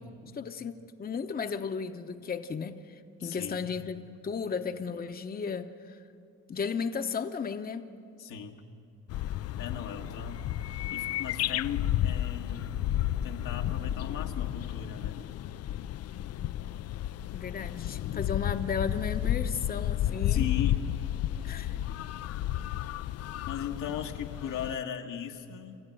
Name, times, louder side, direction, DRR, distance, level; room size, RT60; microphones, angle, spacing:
voice 1, 0.3-6.0 6.5-7.9 17.3-20.5 21.4-21.8, left 6 dB, 30° left, 7 dB, 0.8 m, -34 dB
voice 2, 3.2-3.7 8.2-8.6 9.6-12.9 13.2-15.3 20.3-20.9 23.5-25.9, left 8 dB, 85° left, 2 dB, 1.6 m, -38 dB
sound 1, 9.1-24.8, left 12 dB, 55° left, 0.4 m, -32 dB
28.0 x 13.5 x 7.8 m, 2.5 s
cardioid pair, 90°, 30 cm